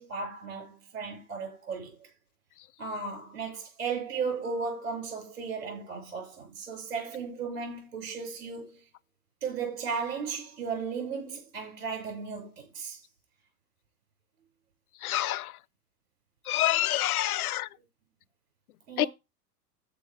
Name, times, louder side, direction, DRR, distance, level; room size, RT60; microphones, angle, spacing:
voice 1, 0.0-1.9 2.8-8.8 9.4-13.0 18.9-19.1, right 5 dB, 70° right, 6.5 m, -35 dB
voice 2, 15.0-15.4 16.5-17.6 19.0-19.1, left 14 dB, 65° left, 0.6 m, -26 dB
14.5 x 5.1 x 3.5 m
figure-of-eight pair, 90°, 49 cm